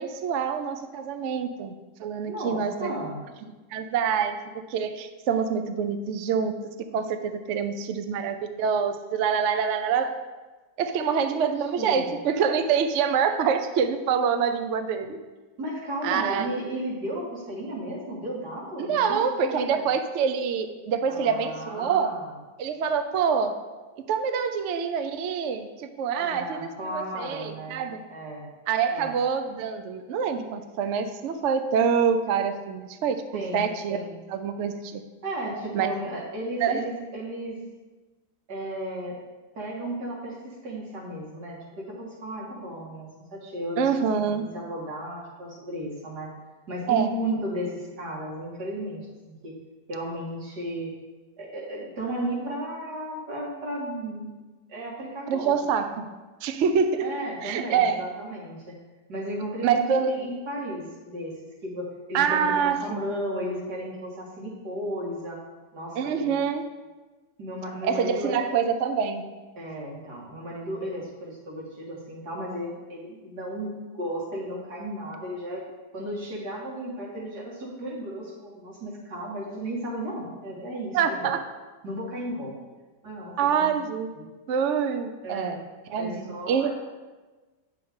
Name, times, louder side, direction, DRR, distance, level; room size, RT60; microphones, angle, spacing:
voice 1, 0.0-3.0 3.7-4.4 4.7-6.5 6.9-10.1 10.8-15.2 16.0-16.5 18.8-22.2 22.6-23.6 24.1-28.0 28.7-34.0 34.3-35.0 35.7-35.9 36.6-36.8 43.8-44.5 46.9-47.1 55.3-55.9 56.4-57.1 57.4-58.0 59.6-60.2 62.1-63.0 66.0-66.7 67.8-69.2 80.9-81.4 83.4-84.2 84.5-85.6 85.9-86.7, right 7 dB, 65° right, 8 dB, 0.7 m, -26 dB
voice 2, 2.3-3.2 11.0-11.4 11.8-12.1 15.6-19.9 21.1-22.3 26.2-28.4 28.9-29.2 33.3-34.2 35.2-37.6 38.5-39.2 39.5-43.9 44.3-46.3 46.7-49.6 49.9-50.9 51.4-54.3 54.7-55.5 55.9-56.0 57.0-58.7 59.1-61.3 61.6-65.4 65.7-66.4 67.4-68.4 69.6-75.7 75.9-81.3 81.8-82.5 83.0-83.7 84.2-84.3 85.2-85.6 86.0-86.7, right 1 dB, 85° right, -4 dB, 2.4 m, -34 dB
8.7 x 6.9 x 3.6 m, 1.2 s
omnidirectional pair, 1.7 m